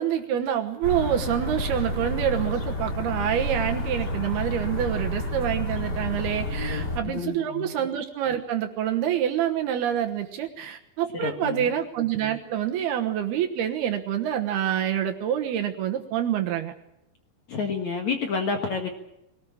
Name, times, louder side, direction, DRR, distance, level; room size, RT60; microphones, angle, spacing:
voice 1, 0.0-16.7, right 10 dB, 70° right, 5 dB, 2.8 m, -27 dB
sound 1, 0.8-7.0, left 1 dB, 25° left, 3.2 m, -30 dB
voice 2, 6.5-7.7 11.2-11.7 17.5-18.9, left 5 dB, 55° left, 4 dB, 2.3 m, -30 dB
22.5 x 18.5 x 8.6 m, 0.84 s
omnidirectional pair, 5.3 m